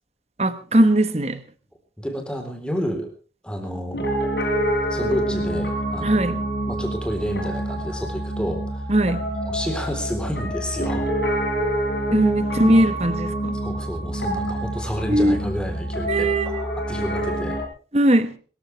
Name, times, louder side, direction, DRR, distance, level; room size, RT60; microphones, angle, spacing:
voice 1, 0.4-1.4 6.0-6.4 8.9-9.2 12.1-13.5 15.1-15.4 16.1-16.6 17.9-18.3, right 1 dB, 35° right, 1.3 m, -19 dB
voice 2, 2.0-3.1 3.4-4.0 4.9-6.2 6.7-8.9 9.4-11.0 12.7-12.9 13.6-17.6, equal, 5° left, 4.0 m, -30 dB
Piano, 3.9-17.6, right 1 dB, 75° left, 6.0 m, -27 dB
25.0 x 14.0 x 3.4 m
head